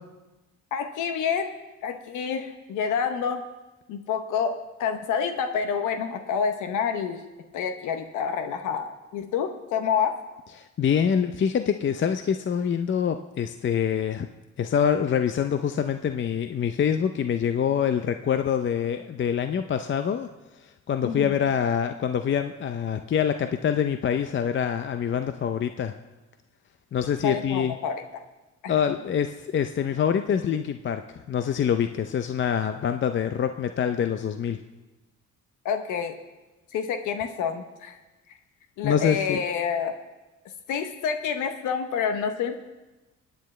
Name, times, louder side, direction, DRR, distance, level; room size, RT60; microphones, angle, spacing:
voice 1, 0.7-1.5 1.8-3.4 3.9-7.2 7.5-10.2 21.0-21.3 27.2-28.0 28.6-28.7 35.6-36.1 36.7-38.0 38.8-39.9 40.7-42.6, left 6 dB, 85° left, 7 dB, 0.9 m, -28 dB
voice 2, 10.6-14.3 14.6-20.3 20.6-25.9 26.9-27.7 28.7-31.0 31.3-34.6 38.8-39.4, left 8 dB, 40° left, 8 dB, 0.5 m, -25 dB
22.5 x 9.2 x 3.2 m, 1.1 s
cardioid pair, 90°, 30 cm